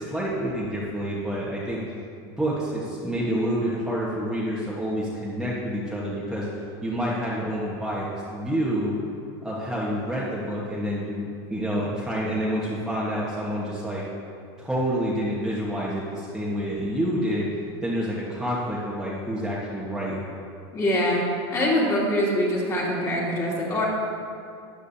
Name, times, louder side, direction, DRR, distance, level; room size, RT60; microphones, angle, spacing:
voice 1, 0.0-1.8 2.2-6.5 6.8-8.9 9.4-14.0 14.6-17.5 17.8-20.2, equal, 5° right, -7 dB, 1.4 m, -28 dB
voice 2, 20.7-21.2 21.5-23.9, left 1 dB, 25° left, -5 dB, 2.7 m, -24 dB
13.5 x 9.5 x 2.8 m, 2.5 s
supercardioid pair, 130°, 13 cm